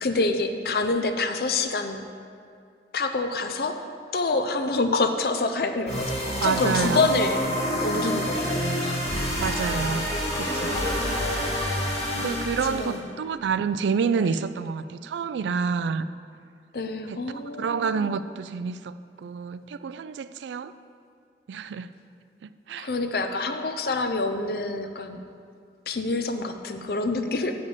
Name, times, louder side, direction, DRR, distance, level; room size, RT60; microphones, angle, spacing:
voice 1, 0.0-2.0 2.9-3.8 4.1-7.5 7.8-9.6 12.6-13.1 14.2-14.3 16.7-18.1 22.8-25.2 25.9-27.6, left 3 dB, 55° left, 6 dB, 0.6 m, -27 dB
sound 1, 5.9-13.0, equal, 35° left, 2.4 m, -28 dB
voice 2, 6.4-7.0 9.4-10.9 12.1-16.1 17.1-17.2 17.6-18.9 19.2-20.7 21.5-21.9 22.4-22.9, right 6 dB, 85° right, 14 dB, 0.3 m, -28 dB
8.0 x 5.2 x 6.8 m, 2.3 s
head